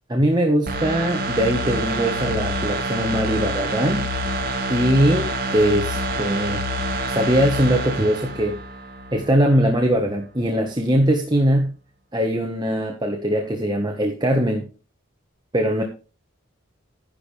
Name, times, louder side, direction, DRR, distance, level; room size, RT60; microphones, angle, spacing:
voice 1, 0.1-4.1 4.7-6.6 7.1-8.6 9.1-11.8 12.1-14.7 15.5-15.8, equal, 20° right, 1.5 m, -21 dB
sound 1, 0.7-9.3 9.7-9.8, right 1 dB, 45° right, 2.7 m, -27 dB
12.5 x 10.5 x 3.5 m
head